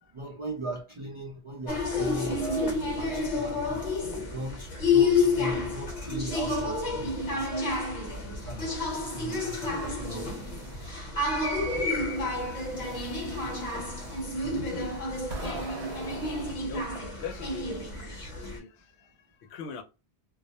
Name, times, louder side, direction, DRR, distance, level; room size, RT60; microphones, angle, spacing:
voice 1, 0.1-3.8 4.3-7.7 8.2-8.6 9.1-10.3, right 2 dB, 40° right, 0.4 m, -38 dB
sound 1, 1.7-18.6, left 3 dB, 45° left, 0.9 m, -30 dB
sound 2, 8.4-11.0 11.7-16.5, right 2 dB, 75° right, 0.9 m, -45 dB
voice 2, 8.9-9.9 11.1-11.2 12.2-12.9 13.5-13.8 14.7-16.0 16.5-16.9 17.2-19.8, left 6 dB, 75° left, 0.8 m, -44 dB
2.3 x 2.0 x 2.7 m
omnidirectional pair, 1.1 m